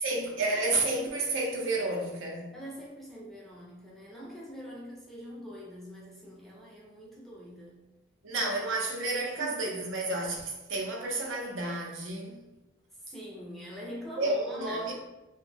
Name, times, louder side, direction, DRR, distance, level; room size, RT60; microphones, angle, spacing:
voice 1, 0.0-2.5 8.2-12.4 14.2-14.9, right 2 dB, 85° right, 0 dB, 0.6 m, -31 dB
voice 2, 2.5-7.8 9.4-9.6 13.1-14.9, equal, ahead, -5 dB, 0.4 m, -44 dB
2.1 x 2.1 x 3.2 m, 1.0 s
head